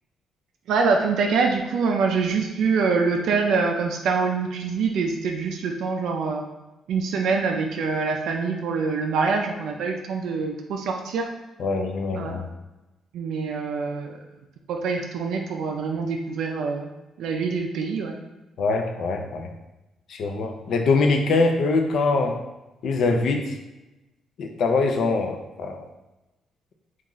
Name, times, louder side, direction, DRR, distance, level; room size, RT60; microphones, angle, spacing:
voice 1, 0.7-6.5 6.9-11.3 12.1-12.4 13.1-14.2 14.7-16.9 17.2-18.2, right 4 dB, 80° right, 2 dB, 0.3 m, -25 dB
voice 2, 11.6-12.4 18.6-19.5 20.1-22.4 22.8-23.5 24.4-25.8, left 3 dB, 65° left, 4 dB, 0.4 m, -23 dB
3.0 x 2.4 x 3.7 m, 1.0 s
cardioid pair, 90°, 0 cm